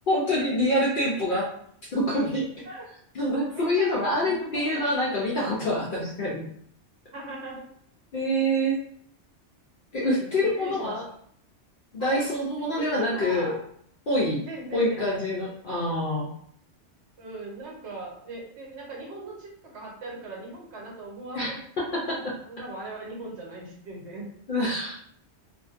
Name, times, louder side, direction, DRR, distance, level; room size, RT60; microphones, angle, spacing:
voice 1, 0.1-1.5 1.9-2.5 3.2-6.4 8.1-8.8 9.9-11.0 11.9-13.5 14.1-14.4 14.7-16.3 21.3-22.0 24.5-25.0, left 1 dB, 60° left, -4 dB, 0.6 m, -26 dB
voice 2, 3.5-4.8 7.1-7.6 10.0-10.9 12.0-12.2 12.6-13.6 14.5-15.2 17.2-21.6 21.9-24.3, right 2 dB, 70° right, -2 dB, 1.0 m, -39 dB
2.4 x 2.1 x 2.4 m, 0.65 s
omnidirectional pair, 1.2 m